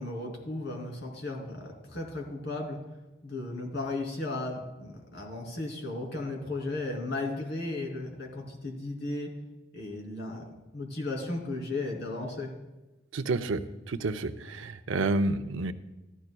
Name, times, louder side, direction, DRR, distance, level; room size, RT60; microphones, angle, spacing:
voice 1, 0.0-2.8 3.2-9.3 9.7-12.5, left 2 dB, 60° left, 0 dB, 2.7 m, -35 dB
voice 2, 13.1-13.6 13.9-15.7, right 3 dB, 80° right, 9 dB, 0.6 m, -29 dB
14.0 x 12.0 x 2.3 m, 1.0 s
head